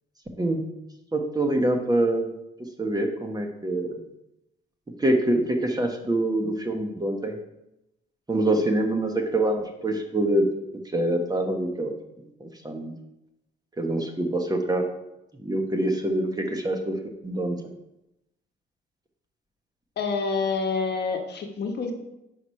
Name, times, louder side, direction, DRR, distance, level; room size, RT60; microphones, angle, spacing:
voice 1, 1.1-2.3 2.8-4.0 5.0-7.3 8.3-10.4 10.9-12.0 12.4-12.9 13.8-14.8 15.4-16.9 17.2-17.6, right 1 dB, 20° right, 4 dB, 1.1 m, -25 dB
voice 2, 20.0-21.9, left 4 dB, 55° left, 4 dB, 1.1 m, -27 dB
5.7 x 4.8 x 5.6 m, 0.89 s
cardioid pair, 90°, 20 cm